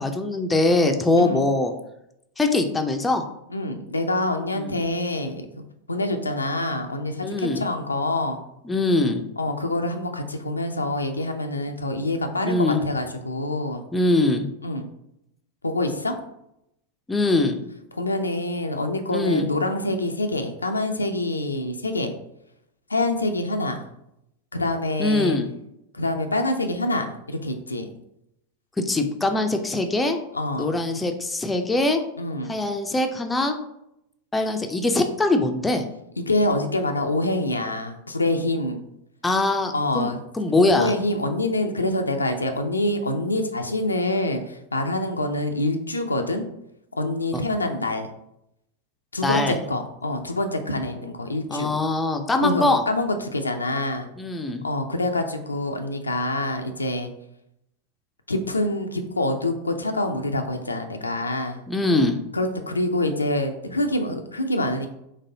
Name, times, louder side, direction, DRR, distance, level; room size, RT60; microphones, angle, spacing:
voice 1, 0.0-1.7 2.4-3.2 4.6-4.7 7.2-7.6 8.7-9.2 12.4-12.8 13.9-14.5 17.1-17.6 19.1-19.5 25.0-25.5 28.8-30.2 30.6-32.0 32.5-33.6 34.3-35.8 39.2-40.1 40.3-40.9 47.3-47.4 49.2-49.6 51.5-52.8 54.2-54.6 61.7-62.2, left 2 dB, 10° left, 5 dB, 0.4 m, -22 dB
voice 2, 3.5-5.5 5.9-8.4 9.4-13.8 14.6-14.8 15.6-16.2 17.9-22.1 22.9-23.8 24.5-25.4 25.9-27.9 30.3-30.8 32.2-32.5 36.2-38.8 39.7-40.2 40.8-46.4 47.0-48.1 49.1-51.8 52.4-54.1 54.6-57.1 58.3-61.6 62.3-64.9, left 2 dB, 80° left, 6 dB, 0.4 m, -26 dB
4.0 x 3.1 x 2.7 m, 0.80 s
figure-of-eight pair, 90°, 0 cm